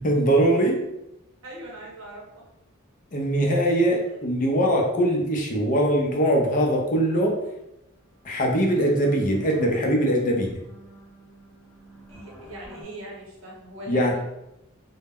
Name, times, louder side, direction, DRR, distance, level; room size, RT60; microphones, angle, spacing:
voice 1, 0.0-0.8 3.1-7.3 8.2-10.5 13.9-14.1, right 1 dB, 40° left, 0 dB, 0.5 m, -22 dB
voice 2, 1.4-2.4 12.1-14.2, right 1 dB, 75° right, -3 dB, 0.9 m, -40 dB
sound 1, 7.4-7.5 7.8-12.8, left 2 dB, 10° left, 0.7 m, -48 dB
2.1 x 2.0 x 3.4 m, 0.86 s
head